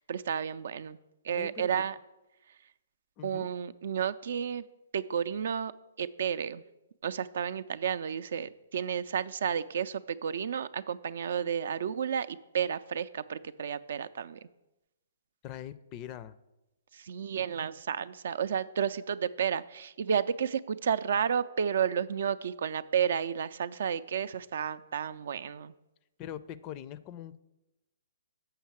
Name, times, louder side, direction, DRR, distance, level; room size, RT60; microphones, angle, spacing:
voice 1, 0.1-1.0 1.2-1.9 3.2-4.6 4.9-5.7 6.0-6.6 7.0-14.4 16.9-25.7, right 7 dB, 60° right, 15 dB, 0.4 m, -31 dB
voice 2, 1.4-1.8 3.2-3.5 15.4-16.3 26.2-27.4, left 10 dB, 30° left, 16 dB, 0.4 m, -42 dB
7.1 x 5.7 x 7.2 m, 0.97 s
figure-of-eight pair, 125°, 0 cm